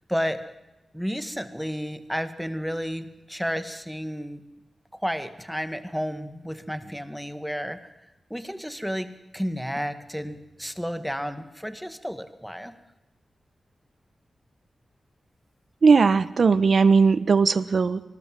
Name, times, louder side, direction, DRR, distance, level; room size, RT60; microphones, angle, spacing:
voice 1, 0.1-0.4 0.9-4.4 5.0-7.8 8.3-12.7, equal, ahead, 10 dB, 1.9 m, -31 dB
voice 2, 15.8-18.0, right 5 dB, 60° right, 15 dB, 1.2 m, -18 dB
25.0 x 20.0 x 7.8 m, 0.97 s
wide cardioid pair, 95°, 0 cm